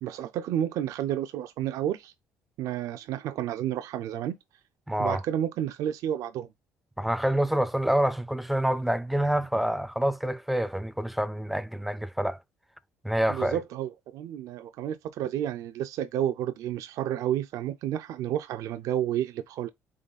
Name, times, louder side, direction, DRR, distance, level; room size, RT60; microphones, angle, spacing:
voice 1, 0.0-2.1 2.6-4.4 5.0-6.5 13.3-19.7, right 11 dB, 75° right, 0.4 m, -31 dB
voice 2, 4.9-5.2 7.0-12.4 13.0-13.6, right 1 dB, ahead, 0.3 m, -27 dB
3.8 x 3.2 x 3.9 m
cardioid pair, 90°, 6 cm